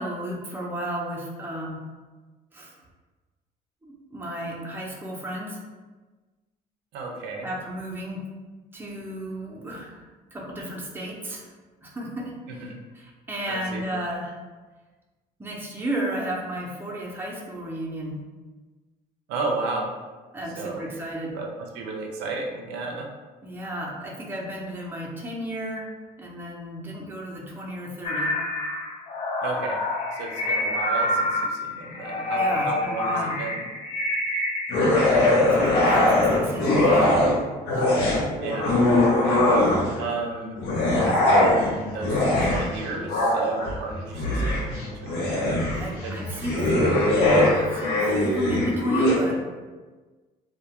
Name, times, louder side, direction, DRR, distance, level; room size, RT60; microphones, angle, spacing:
voice 1, 0.0-1.8 2.5-2.7 3.8-5.6 7.4-8.2 8.7-10.0 10.3-11.5 11.8-12.6 13.0-14.4 15.4-18.2 20.3-21.4 23.4-25.9 26.2-28.3 32.3-33.4 35.5-37.4 37.6-38.3 39.2-39.7 45.7-46.7 47.5-49.4, right 1 dB, 10° right, -3 dB, 0.5 m, -32 dB
voice 2, 6.9-7.5 12.5-12.8 13.5-13.8 19.3-19.9 20.6-20.9 21.3-23.1 29.4-29.8 30.1-33.6 38.4-38.7 40.0-46.9, right 3 dB, 85° right, 1 dB, 0.4 m, -33 dB
sound 1, 28.0-34.8, left 1 dB, 40° left, 0.4 m, -27 dB
sound 2, 34.7-37.4 37.7-40.0 40.6-49.2, left 1 dB, 90° left, 0.7 m, -21 dB
2.3 x 2.1 x 2.8 m, 1.3 s
cardioid pair, 110°, 17 cm